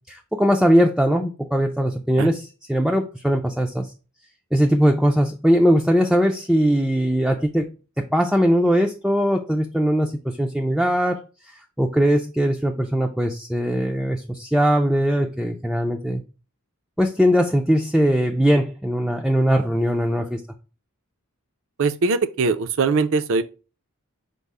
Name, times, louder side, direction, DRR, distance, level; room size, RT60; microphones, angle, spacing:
voice 1, 0.1-3.9 4.5-7.7 8.1-11.2 11.5-16.2 17.0-20.4, equal, ahead, 0.3 m, -20 dB
voice 2, 21.8-23.4, right 4 dB, 65° right, 0.5 m, -21 dB
5.3 x 2.0 x 4.6 m
head